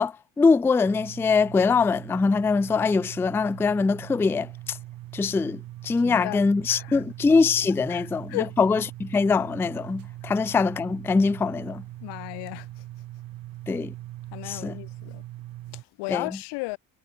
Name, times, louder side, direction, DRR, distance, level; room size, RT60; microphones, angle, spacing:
voice 1, 0.0-4.8 5.1-11.8 13.7-13.9 14.5-14.8 16.1-16.3, left 4 dB, 5° left, 0.3 m, -23 dB
sound 1, 0.8-15.8, right 15 dB, 55° right, 1.1 m, -41 dB
voice 2, 6.0-6.4 6.7-7.0 7.9-8.5 10.2-10.3 12.0-12.8 14.3-15.2 15.7-16.8, left 28 dB, 80° left, 0.8 m, -35 dB
supercardioid pair, 100°, 41 cm